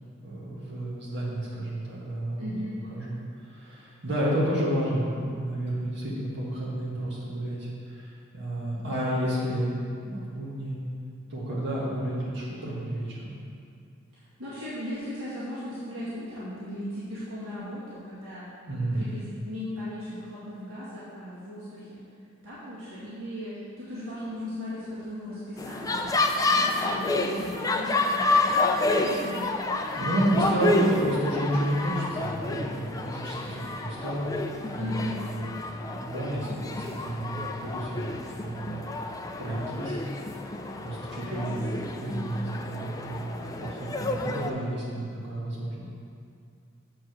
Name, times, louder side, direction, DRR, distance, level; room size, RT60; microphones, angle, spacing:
voice 1, 0.2-2.5 2.9-3.2 3.5-9.7 10.0-10.7 11.3-13.3 18.7-19.0 30.0-35.5 35.9-38.8 39.4-40.0 40.8-45.9, right 1 dB, 55° right, -7 dB, 1.7 m, -31 dB
voice 2, 2.4-2.8 14.1-18.5 18.9-22.0 22.4-26.1 26.4-29.5 29.9-30.1 30.5-30.9 34.7-35.2 41.2-41.6, left 1 dB, 80° right, -11 dB, 2.1 m, -37 dB
sound 1, 25.6-44.5, left 2 dB, 15° left, 0.4 m, -29 dB
7.5 x 4.8 x 6.1 m, 2.3 s
head